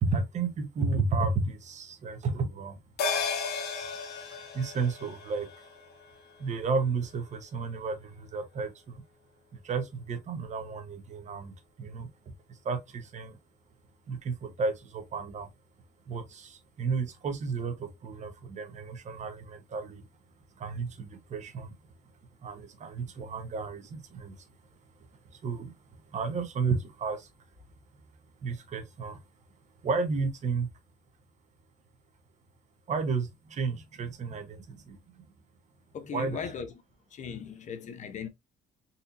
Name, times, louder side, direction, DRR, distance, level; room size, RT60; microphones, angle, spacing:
voice 1, 0.0-2.8 4.5-5.5 6.4-9.0 9.6-11.5 11.8-12.1 12.6-13.4 14.1-15.5 16.1-20.0 20.6-21.7 22.4-24.4 25.4-25.7 26.1-27.3 28.4-29.2 29.8-30.7 32.9-35.0 36.1-36.4, right 4 dB, 45° right, 0.9 m, -32 dB
sound 1, 3.0-7.7 8.0-8.1, left 5 dB, 75° left, 1.3 m, -36 dB
voice 2, 35.9-36.7 37.1-38.3, left 7 dB, 45° left, 0.7 m, -38 dB
4.1 x 2.7 x 2.5 m
cardioid pair, 110°, 17 cm